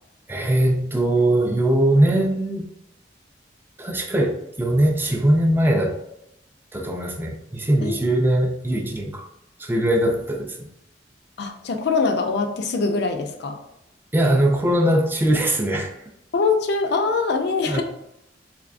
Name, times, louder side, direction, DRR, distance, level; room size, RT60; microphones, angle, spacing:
voice 1, 0.3-2.7 3.8-6.0 6.7-9.3 9.6-10.7 14.1-15.9 17.7-17.8, right 1 dB, 10° right, 1 dB, 0.3 m, -21 dB
voice 2, 11.4-13.6 16.3-17.8, left 4 dB, 65° left, 6 dB, 0.4 m, -23 dB
3.4 x 3.3 x 2.5 m, 0.81 s
head